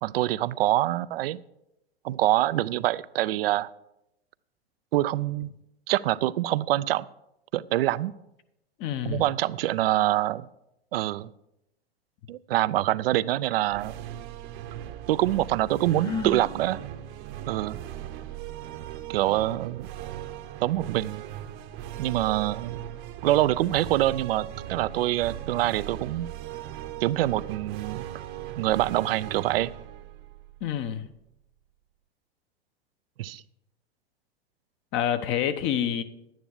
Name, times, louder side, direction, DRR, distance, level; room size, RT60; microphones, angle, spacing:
voice 1, 0.0-1.4 2.0-3.7 4.9-5.5 5.9-7.1 7.5-8.1 9.0-10.5 10.9-11.3 12.3-13.9 15.1-16.8 17.5-17.8 19.1-19.9 20.6-21.2 22.0-22.8 23.2-26.3 27.0-28.0 28.6-29.7 33.2-33.4, right 14 dB, 65° right, 18 dB, 0.5 m, -25 dB
voice 2, 8.8-9.2 30.6-31.1 34.9-36.0, left 10 dB, 35° left, 10 dB, 0.9 m, -27 dB
sound 1, 13.7-31.1, right 11 dB, 40° right, 0.9 m, -39 dB
Sigh, 15.9-16.5, left 5 dB, 10° left, 0.4 m, -32 dB
11.0 x 9.3 x 4.9 m, 0.85 s
hypercardioid pair, 105°, 32 cm